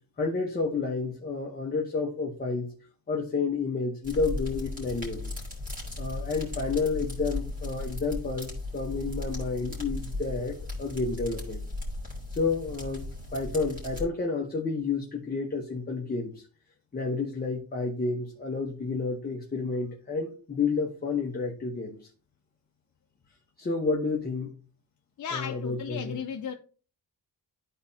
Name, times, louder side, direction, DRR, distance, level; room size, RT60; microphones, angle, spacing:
voice 1, 0.2-2.7 3.1-5.3 6.0-11.6 12.3-13.1 13.3-16.4 16.9-22.0 23.6-24.5 25.3-26.2, left 4 dB, 25° left, 1.0 m, -30 dB
sound 1, 4.0-14.0, left 2 dB, 20° right, 3.0 m, -36 dB
voice 2, 25.2-26.5, left 7 dB, 50° left, 0.7 m, -35 dB
12.5 x 4.3 x 2.7 m
wide cardioid pair, 170°, 39 cm